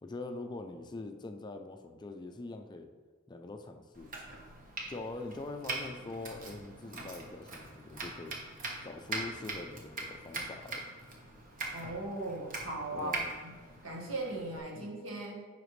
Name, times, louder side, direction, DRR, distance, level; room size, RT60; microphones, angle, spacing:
voice 1, 0.0-2.9 3.3-4.1 4.9-8.4 8.8-10.9 12.9-13.3 14.8-14.9, left 2 dB, 20° left, 6 dB, 0.4 m, -43 dB
Domestic sounds home sounds, 3.9-14.6, right 2 dB, 45° right, 1.2 m, -42 dB
voice 2, 11.7-13.2 13.8-15.4, right 2 dB, 75° right, -2 dB, 1.7 m, -38 dB
9.9 x 5.0 x 3.2 m, 1.5 s
head